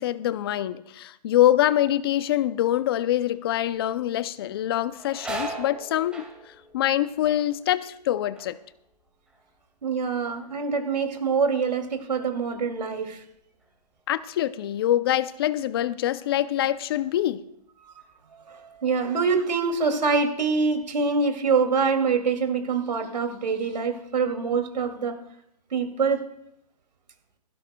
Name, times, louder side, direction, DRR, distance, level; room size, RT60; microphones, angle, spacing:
voice 1, 0.0-6.3 6.7-8.6 14.1-17.4, left 12 dB, 35° left, 0.5 m, -24 dB
sound 1, 3.7-4.1 4.5-10.0 10.3-10.9 11.4-14.4 14.7-14.8 15.8-16.0 16.4-17.5 18.0-18.2 18.7-19.4 19.7-20.9, right 2 dB, 5° right, 2.0 m, -42 dB
voice 2, 9.8-13.2 18.5-25.2 25.7-26.2, right 5 dB, 85° right, 2.6 m, -25 dB
17.0 x 15.5 x 2.3 m
hypercardioid pair, 150°, 21 cm